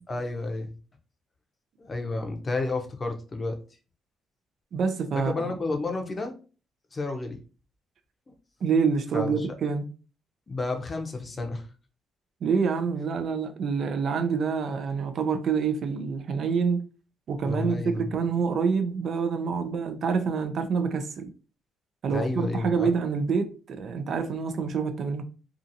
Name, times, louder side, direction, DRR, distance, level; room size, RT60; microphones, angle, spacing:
voice 1, 0.1-0.7 1.8-3.6 5.2-6.3 6.9-7.4 9.1-9.5 10.5-11.6 17.4-18.1 22.1-22.9, left 2 dB, 30° left, 0.6 m, -31 dB
voice 2, 4.7-5.5 8.6-9.9 12.4-16.8 17.3-21.3 22.0-25.2, right 5 dB, 60° right, 0.4 m, -27 dB
2.7 x 2.4 x 2.6 m
cardioid pair, 90°, 0 cm